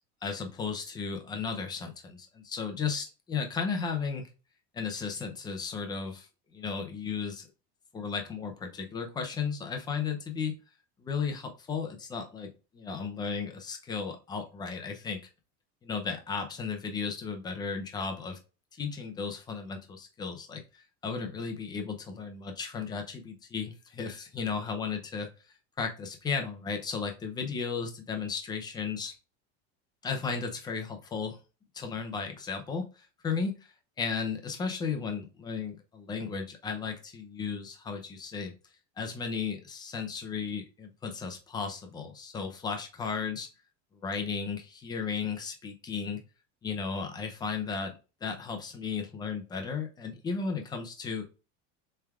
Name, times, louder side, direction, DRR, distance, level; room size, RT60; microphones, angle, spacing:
voice 1, 0.2-4.3 4.7-6.3 6.5-7.5 7.9-10.5 11.0-15.2 15.8-18.4 18.8-20.6 21.0-25.3 25.8-29.1 30.0-31.4 31.7-33.7 34.0-38.5 39.0-43.5 44.0-46.2 46.6-47.9 48.2-51.2, left 5 dB, 10° left, 4 dB, 0.4 m, -34 dB
6.9 x 3.3 x 2.3 m, 0.32 s
cardioid pair, 175°, 35 cm